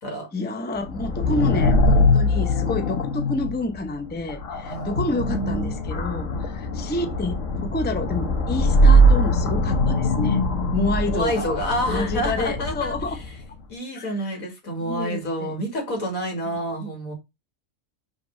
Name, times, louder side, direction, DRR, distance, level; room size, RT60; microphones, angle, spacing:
voice 1, 0.3-10.4 10.7-11.4 11.9-13.1 13.9-14.1 14.8-15.5, left 2 dB, 10° left, 0.5 m, -29 dB
sound 1, 0.8-13.4, equal, 65° left, 1.5 m, -21 dB
voice 2, 4.7-6.8 11.1-13.2 13.7-17.1, equal, 85° left, 2.6 m, -29 dB
5.5 x 3.7 x 5.1 m
omnidirectional pair, 1.4 m